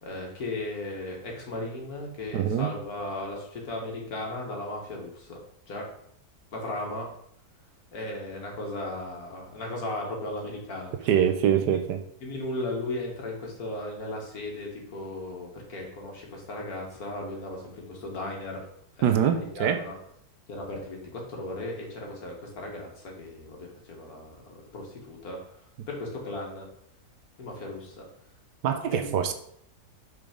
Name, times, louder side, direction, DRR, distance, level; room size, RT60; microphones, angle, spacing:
voice 1, 0.0-5.9 6.5-7.1 7.9-11.1 12.2-18.7 19.0-20.0 20.5-26.7 27.4-28.1 28.9-29.1, left 2 dB, 60° left, 2.1 m, -36 dB
voice 2, 2.3-2.7 11.1-12.0 19.0-19.8 28.6-29.3, right 9 dB, 80° right, 1.3 m, -24 dB
5.5 x 4.6 x 5.1 m
omnidirectional pair, 1.8 m